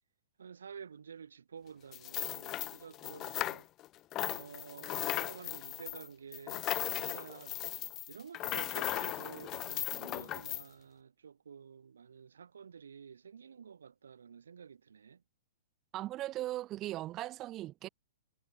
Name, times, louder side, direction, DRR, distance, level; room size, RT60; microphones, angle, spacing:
voice 1, 0.4-3.7 4.3-7.6 8.1-15.2, right 7 dB, 80° right, 7.5 m, -50 dB
sound 1, 1.9-3.9 4.1-10.6, left 15 dB, 30° left, 1.1 m, -37 dB
voice 2, 15.9-17.9, right 15 dB, 30° right, 3.1 m, -38 dB
hypercardioid pair, 120°, 0 cm